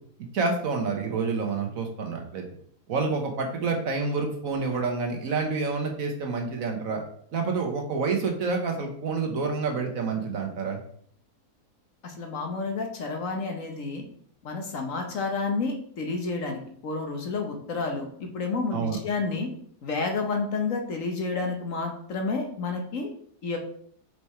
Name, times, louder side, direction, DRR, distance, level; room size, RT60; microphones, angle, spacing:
voice 1, 0.3-2.4 2.9-7.0 7.3-10.8 18.7-19.0, right 4 dB, 60° right, 3 dB, 1.4 m, -28 dB
voice 2, 12.0-14.0 14.4-19.5 19.8-23.1 23.4-23.6, left 4 dB, 60° left, 3 dB, 1.3 m, -30 dB
5.0 x 4.7 x 4.3 m, 0.62 s
omnidirectional pair, 1.7 m